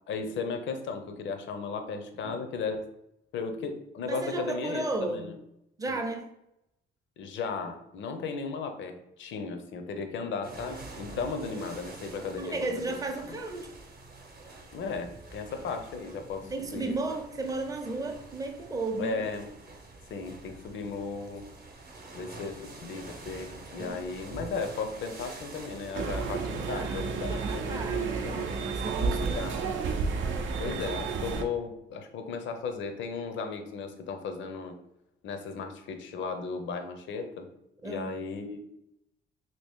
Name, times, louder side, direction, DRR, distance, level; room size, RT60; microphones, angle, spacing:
voice 1, 0.1-2.9 3.3-5.3 5.9-6.0 7.2-13.0 13.3-13.4 14.7-16.9 19.0-19.5 20.1-21.5 22.1-28.5 29.3-29.7 30.6-34.8 35.2-37.5 37.8-38.6, left 4 dB, 70° left, 0.6 m, -36 dB
voice 2, 4.1-5.3 5.8-6.3 12.4-13.7 16.4-19.2 23.8-24.0 26.7-29.8 37.8-38.2, right 2 dB, 15° right, 0.5 m, -34 dB
sound 1, 10.4-29.5, right 2 dB, 45° right, 0.8 m, -47 dB
sound 2, 25.9-31.4, right 5 dB, 75° right, 0.5 m, -31 dB
2.9 x 2.8 x 3.5 m
cardioid pair, 90°, 20 cm